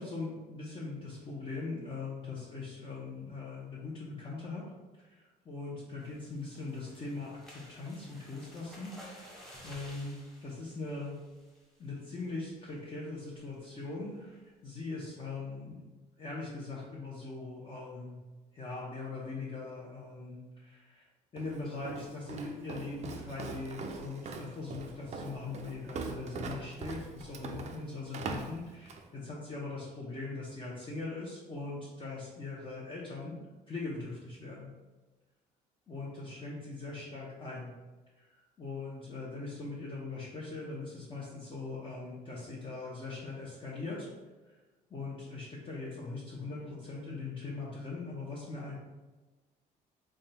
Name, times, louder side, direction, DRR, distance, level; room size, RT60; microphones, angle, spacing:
voice 1, 0.0-4.6 5.0-10.2 10.4-11.2 11.8-15.8 16.2-18.2 18.5-21.1 21.3-33.4 33.7-34.7 35.9-37.7 38.3-44.1 44.5-44.6 44.9-48.7, left 3 dB, 30° left, -6 dB, 0.8 m, -41 dB
sound 1, 6.0-11.8 12.2-12.5 12.8-12.9 13.2-13.5, equal, ahead, 1.0 m, -54 dB
Walk footsteps, 21.4-29.1, right 4 dB, 40° right, 0.4 m, -42 dB
3.6 x 2.3 x 4.1 m, 1.2 s
cardioid pair, 110°, 17 cm